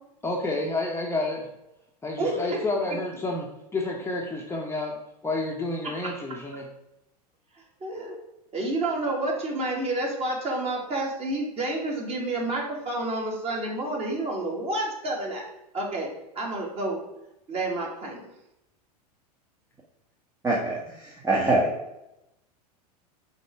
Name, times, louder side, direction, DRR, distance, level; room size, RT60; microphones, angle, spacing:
voice 1, 0.2-1.5 2.0-5.0 5.2-6.6, left 2 dB, 10° left, -1 dB, 1.0 m, -30 dB
voice 2, 7.8-8.2 8.5-15.4 15.7-16.1 16.4-17.0 17.5-18.2, right 2 dB, 30° right, -2 dB, 2.1 m, -29 dB
voice 3, 20.4-21.7, right 2 dB, 15° right, -3 dB, 1.1 m, -24 dB
5.2 x 3.7 x 5.8 m, 0.88 s
hypercardioid pair, 95°, 21 cm